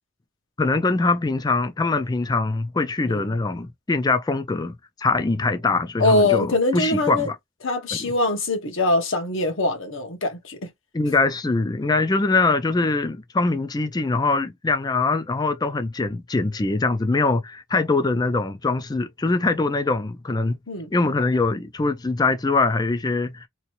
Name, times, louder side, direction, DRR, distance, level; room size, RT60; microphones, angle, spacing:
voice 1, 0.6-7.4 8.0-8.1 10.9-20.6 20.9-23.5, left 3 dB, 20° left, 0.4 m, -23 dB
voice 2, 6.0-7.3 7.6-10.7 20.7-20.9, left 2 dB, 65° left, 1.0 m, -23 dB
3.0 x 2.6 x 3.0 m
head